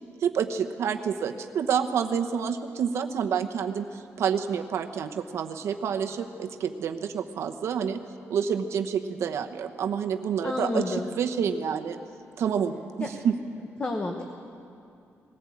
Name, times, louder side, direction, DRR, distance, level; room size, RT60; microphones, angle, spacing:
voice 1, 0.2-8.0 8.3-12.0 12.4-13.4, right 7 dB, 70° right, 6 dB, 0.9 m, -28 dB
voice 2, 10.4-11.1 13.0-13.1 13.8-14.2, left 2 dB, 25° left, 3 dB, 1.1 m, -29 dB
20.5 x 15.0 x 8.5 m, 2.5 s
wide cardioid pair, 165°, 5 cm